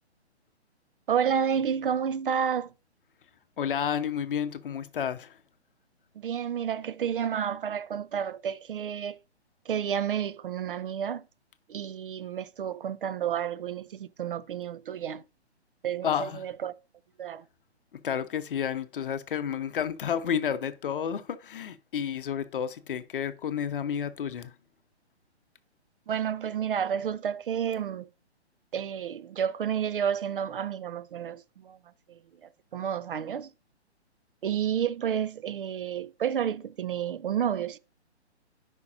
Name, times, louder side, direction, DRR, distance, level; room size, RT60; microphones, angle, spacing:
voice 1, 1.1-2.7 6.2-9.2 9.7-11.2 11.7-15.2 15.8-16.7 17.2-17.4 26.1-28.1 28.7-31.8 32.1-32.2 32.7-33.5 34.4-37.8, right 8 dB, 50° right, 0.4 m, -30 dB
voice 2, 3.6-5.4 16.0-16.5 17.9-24.5, left 8 dB, 50° left, 0.7 m, -31 dB
9.4 x 5.3 x 2.5 m
figure-of-eight pair, 135°, 34 cm